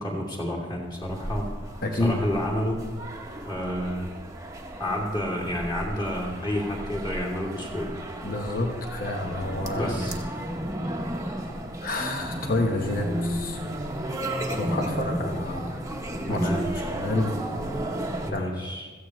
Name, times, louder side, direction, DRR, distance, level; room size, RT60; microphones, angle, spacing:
voice 1, 0.0-1.5 2.0-2.8 3.4-4.1 4.8-7.9 9.7-10.1 16.3-16.7 18.3-18.9, equal, 20° left, -4 dB, 2.8 m, -30 dB
sound 1, 1.0-18.3, right 1 dB, 15° right, 1.0 m, -33 dB
voice 2, 1.8-2.2 8.2-9.9 11.8-13.6 14.4-15.6 16.3-16.4 16.8-17.4 18.3-18.5, left 2 dB, 45° left, 2 dB, 1.1 m, -28 dB
16.5 x 14.5 x 3.2 m, 1.4 s
head